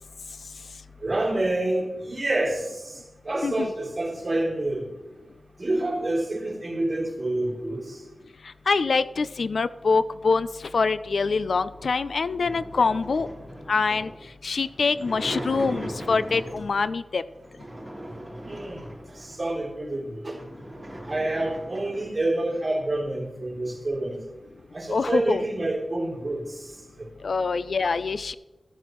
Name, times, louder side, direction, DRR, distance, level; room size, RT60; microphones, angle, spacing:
voice 1, 1.0-4.9 5.6-8.0 18.4-20.4 21.1-24.2 24.7-26.7 27.0-27.1, right 2 dB, 35° right, -3 dB, 3.1 m, -28 dB
voice 2, 8.7-13.3 13.7-14.1 14.4-17.2 24.9-25.4 27.2-28.3, left 4 dB, 70° left, 14 dB, 0.3 m, -24 dB
sound 1, 11.7-16.9 17.4-19.5 20.0-20.1 20.3-22.1, right 1 dB, 10° right, 3.2 m, -39 dB
14.0 x 9.2 x 3.1 m, 1.1 s
wide cardioid pair, 75°, 0 cm